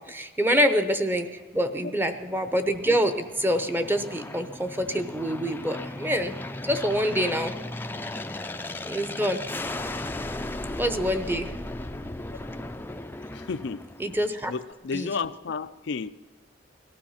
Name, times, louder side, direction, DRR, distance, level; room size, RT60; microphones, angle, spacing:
voice 1, 0.0-6.3 6.6-7.5 8.8-9.4 10.8-11.5 14.0-14.5 14.9-15.1, equal, 10° right, 9 dB, 0.8 m, -26 dB
Aircraft, 1.7-14.4, left 2 dB, 10° left, 0.5 m, -36 dB
voice 2, 13.3-13.8 14.5-16.1, left 5 dB, 65° left, 11 dB, 0.5 m, -32 dB
18.5 x 13.0 x 5.7 m, 1.4 s
head